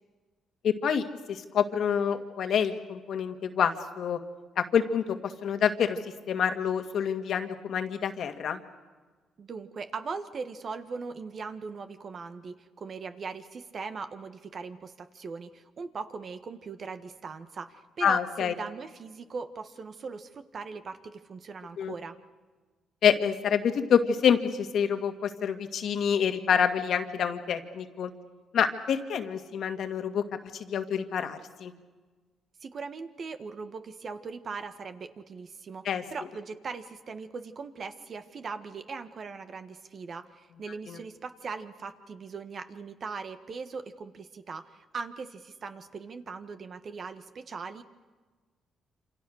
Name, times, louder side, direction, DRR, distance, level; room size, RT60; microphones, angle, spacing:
voice 1, 0.6-4.2 4.6-8.6 18.0-18.5 21.8-21.9 23.0-28.1 28.5-30.2 30.5-31.7 35.9-36.0 40.9-41.0, left 8 dB, 65° left, 7 dB, 2.0 m, -27 dB
voice 2, 9.4-22.2 32.6-35.8 36.1-47.8, right 4 dB, 50° right, 9 dB, 1.7 m, -40 dB
27.5 x 27.0 x 6.6 m, 1.3 s
cardioid pair, 90°, 0 cm